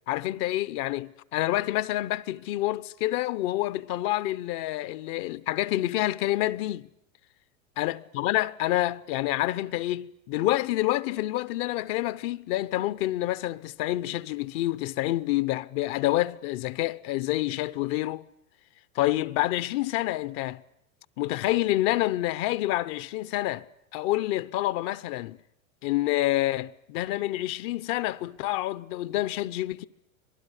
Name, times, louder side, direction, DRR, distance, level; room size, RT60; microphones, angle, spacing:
voice 1, 0.1-6.9 7.8-18.2 18.9-20.6 21.2-23.7 23.9-25.4 25.8-29.8, left 16 dB, 45° left, 0.9 m, -28 dB
26.0 x 19.5 x 10.0 m
hypercardioid pair, 125°, 42 cm